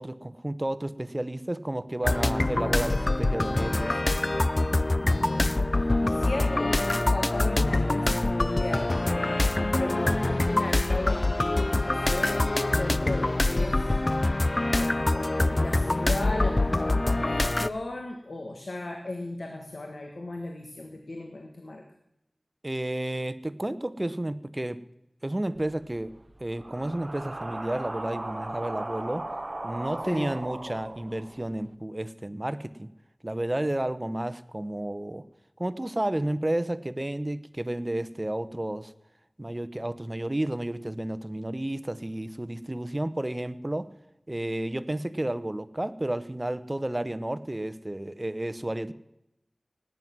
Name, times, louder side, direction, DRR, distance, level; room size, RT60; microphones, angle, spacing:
voice 1, 0.0-4.0 22.6-24.8 25.2-29.2 29.6-32.9 33.2-35.3 35.6-38.9 39.4-43.9 44.3-48.9, right 1 dB, 30° right, 13 dB, 0.9 m, -31 dB
sound 1, 2.0-17.7, left 2 dB, 45° left, 0.5 m, -25 dB
voice 2, 4.9-5.3 6.0-13.9 14.7-21.8 30.0-30.3, left 2 dB, 90° left, 3 dB, 1.5 m, -35 dB
sound 2, 25.5-31.7, right 2 dB, 45° right, 0.5 m, -38 dB
18.5 x 9.4 x 6.1 m, 0.86 s
wide cardioid pair, 45°, 0 cm